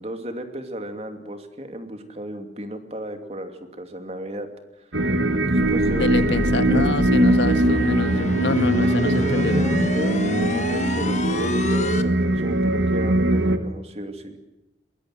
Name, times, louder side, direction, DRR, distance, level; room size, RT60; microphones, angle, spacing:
voice 1, 0.0-4.5 4.8-4.9 5.4-6.9 8.7-14.4, right 1 dB, 35° right, 7 dB, 2.8 m, -34 dB
sound 1, 4.9-13.6, right 1 dB, 85° right, 1.8 m, -21 dB
sound 2, 5.6-12.0, left 1 dB, 40° left, 1.4 m, -27 dB
voice 2, 5.9-9.6, left 2 dB, 80° left, 10 dB, 1.8 m, -26 dB
22.5 x 21.0 x 7.7 m, 0.98 s
head